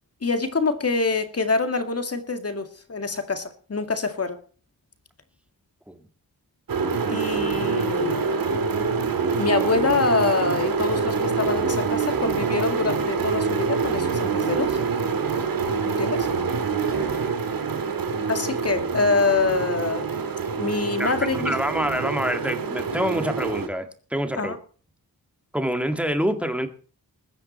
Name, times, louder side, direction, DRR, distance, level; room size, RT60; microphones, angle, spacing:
voice 1, 0.2-4.4 7.1-8.3 9.4-14.8 15.9-16.3 18.3-20.1 20.6-21.6 24.4-24.6, left 4 dB, 40° left, 8 dB, 2.1 m, -25 dB
sound 1, 6.7-23.7, right 5 dB, 70° right, 2.0 m, -26 dB
voice 2, 21.0-24.6 25.5-26.7, equal, 5° right, 7 dB, 2.0 m, -26 dB
21.0 x 9.8 x 4.4 m, 0.41 s
wide cardioid pair, 135°, 36 cm